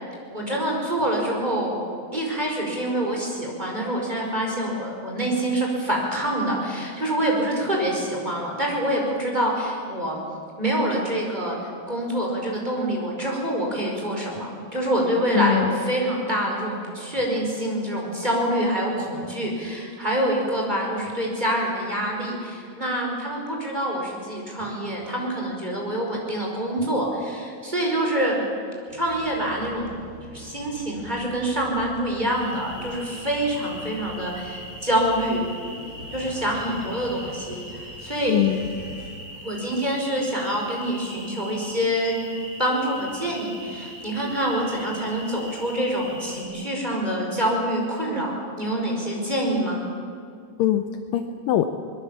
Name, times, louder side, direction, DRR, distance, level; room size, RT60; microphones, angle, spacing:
voice 1, 0.3-1.8 2.1-10.2 10.6-11.6 11.9-28.4 28.9-29.9 30.2-35.4 36.1-38.4 39.4-42.1 42.6-48.3 48.6-49.8, right 1 dB, 10° right, -2 dB, 4.8 m, -26 dB
voice 2, 15.3-15.8 38.3-38.7 50.6-51.7, left 12 dB, 80° left, 7 dB, 1.9 m, -23 dB
sound 1, 28.9-39.1, left 1 dB, 55° left, 6.8 m, -44 dB
sound 2, 32.3-46.4, equal, 25° left, 7.3 m, -41 dB
24.5 x 21.0 x 7.3 m, 2.3 s
omnidirectional pair, 4.9 m